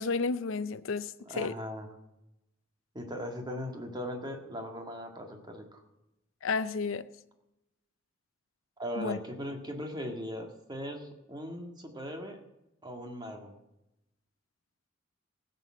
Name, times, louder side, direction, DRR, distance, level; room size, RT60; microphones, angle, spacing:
voice 1, 0.0-1.5 6.4-7.0 9.0-9.2, left 4 dB, 70° left, 0.5 m, -32 dB
voice 2, 1.3-1.9 2.9-5.8 8.8-12.4 12.8-13.5, equal, 20° right, 1.7 m, -39 dB
16.0 x 6.9 x 7.4 m
head